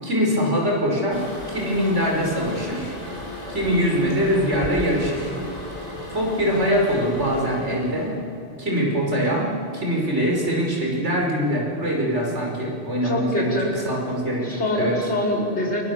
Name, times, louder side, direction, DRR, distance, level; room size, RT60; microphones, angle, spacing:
voice 1, 0.0-3.0 3.5-5.3 6.1-8.2 8.6-15.0, equal, 90° right, -1 dB, 5.9 m, -23 dB
Toilet flush, 1.1-8.2, left 1 dB, 35° left, 7.4 m, -36 dB
voice 2, 13.0-13.7 14.4-15.8, left 1 dB, 75° left, -2 dB, 5.0 m, -24 dB
28.0 x 24.0 x 7.3 m, 2.6 s
omnidirectional pair, 1.2 m